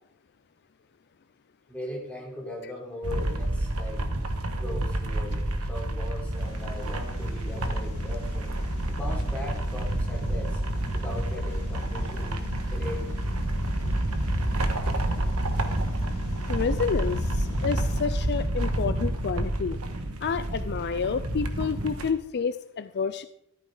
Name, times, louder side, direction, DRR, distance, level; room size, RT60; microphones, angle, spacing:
voice 1, 1.7-4.0 4.6-5.4 5.7-8.6 8.9-10.6 10.9-12.4 12.7-13.1, left 1 dB, 5° left, -3 dB, 3.8 m, -39 dB
sound 1, 3.0-22.1, right 1 dB, 85° right, 1.5 m, -29 dB
sound 2, 6.4-18.0, left 2 dB, 90° left, 2.9 m, -40 dB
voice 2, 16.5-19.8 20.2-23.3, left 5 dB, 50° left, 12 dB, 0.5 m, -29 dB
14.5 x 13.0 x 4.0 m, 0.78 s
head